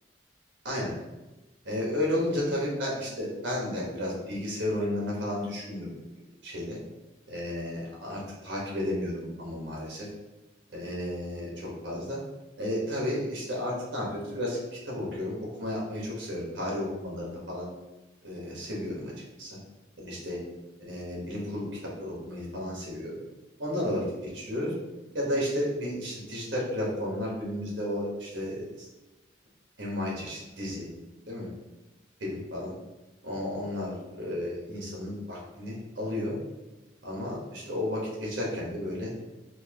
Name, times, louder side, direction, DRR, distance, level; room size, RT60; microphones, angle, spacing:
voice 1, 1.6-5.9 6.4-6.8 7.3-10.1 10.7-12.2 12.6-14.6 14.8-17.7 18.2-19.1 19.4-19.5 20.0-20.4 20.8-21.7 22.0-23.2 23.6-24.7 25.1-28.9 29.8-30.9 31.3-31.5 32.2-32.7 33.2-36.4 37.0-39.1, left 1 dB, 75° right, -4 dB, 1.4 m, -32 dB
4.4 x 2.7 x 2.9 m, 1.1 s
head